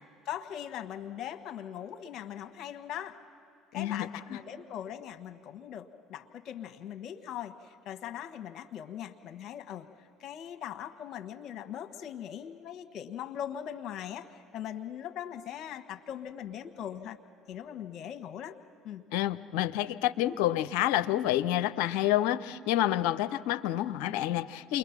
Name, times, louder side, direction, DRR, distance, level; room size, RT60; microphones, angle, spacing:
voice 1, 0.2-3.2 3.7-9.9 10.2-17.2 17.5-18.5 18.8-19.0, left 10 dB, 55° left, 8 dB, 1.3 m, -40 dB
voice 2, 3.7-4.4 19.1-24.8, left 13 dB, 75° left, 14 dB, 0.6 m, -28 dB
29.0 x 22.5 x 5.9 m, 2.6 s
hypercardioid pair, 65°, 0 cm